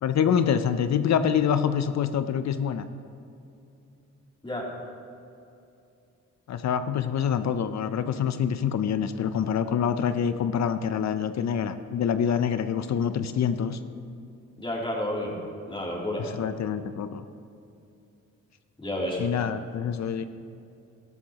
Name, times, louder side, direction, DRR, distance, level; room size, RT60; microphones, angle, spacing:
voice 1, 0.0-2.8 6.5-13.8 16.2-17.2 19.2-20.2, left 8 dB, 60° left, 11 dB, 0.6 m, -26 dB
voice 2, 14.6-15.3 15.7-16.3 18.8-19.2, left 1 dB, 15° left, -3 dB, 2.9 m, -30 dB
13.0 x 12.0 x 2.9 m, 2.6 s
cardioid pair, 65°, 31 cm